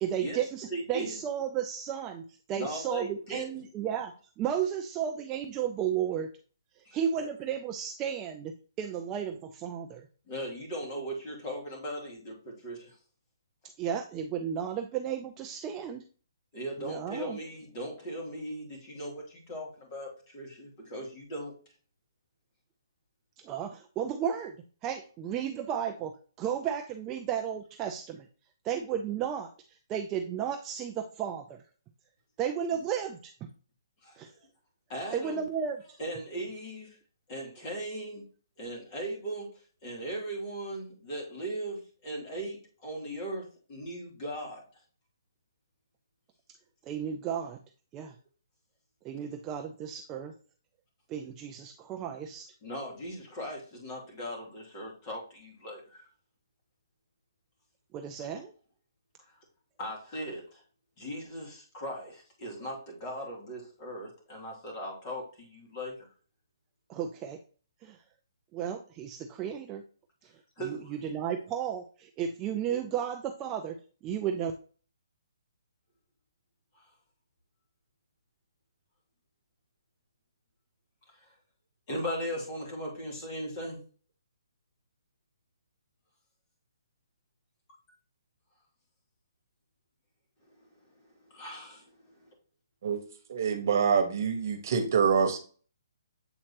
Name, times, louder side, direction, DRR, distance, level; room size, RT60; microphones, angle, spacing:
voice 1, 0.0-6.3 6.8-10.1 13.8-16.0 16.8-17.4 23.4-24.6 24.8-26.1 26.4-28.3 28.6-31.6 32.4-33.5 34.2-34.3 35.1-35.8 46.9-47.6 47.9-48.1 49.0-50.3 51.1-52.5 57.9-58.5 66.9-67.4 67.8-68.0 68.5-69.8 70.2-70.3 70.6-73.8 74.0-74.5, right 8 dB, 20° right, 5 dB, 0.5 m, -33 dB
voice 2, 0.7-1.2 2.5-3.5 6.8-7.3 10.3-13.0 16.5-21.5 34.0-34.2 34.9-35.4 36.0-37.0 37.3-38.2 38.6-44.8 52.6-56.1 59.8-60.6 61.0-66.0 70.6-70.9 76.7-76.8 81.1-81.3 81.9-83.8 90.6-90.7 91.0-92.3, equal, 35° left, -1 dB, 2.9 m, -38 dB
voice 3, 93.3-95.4, right 6 dB, 55° right, 7 dB, 1.2 m, -25 dB
7.8 x 4.3 x 2.9 m, 0.39 s
hypercardioid pair, 150°, 2 cm